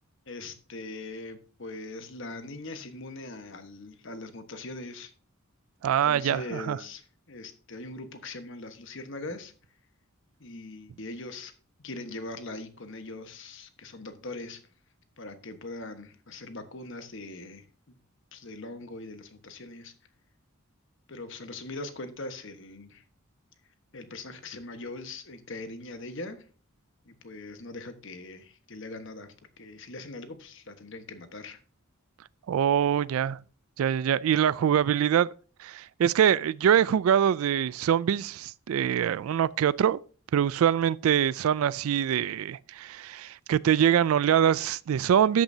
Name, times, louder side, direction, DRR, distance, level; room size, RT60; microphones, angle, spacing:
voice 1, 0.3-5.1 6.0-9.5 10.4-11.5 11.8-14.6 15.2-18.0 18.3-19.9 21.1-23.0 23.9-26.5 27.0-31.6, left 2 dB, 60° left, 1.3 m, -41 dB
voice 2, 5.8-6.8 32.5-33.4 33.8-35.3 35.6-40.0 40.3-45.4, right 9 dB, 80° right, 0.3 m, -24 dB
13.0 x 9.0 x 2.7 m
head